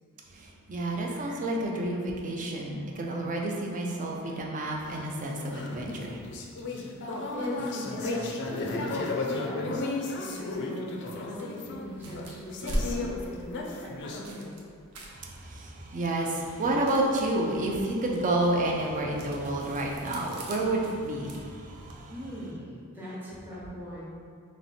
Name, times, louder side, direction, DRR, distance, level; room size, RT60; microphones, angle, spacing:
voice 1, 0.3-6.2 15.0-22.1, right 1 dB, 35° right, -1 dB, 0.5 m, -30 dB
sound 1, 4.9-14.2, left 3 dB, 50° left, 0.4 m, -34 dB
voice 2, 7.3-9.9 10.2-14.6 22.1-24.0, equal, 10° right, -9 dB, 0.9 m, -40 dB
sound 2, 11.9-22.0, right 1 dB, 90° right, 0.6 m, -41 dB
3.1 x 3.0 x 4.1 m, 2.2 s
head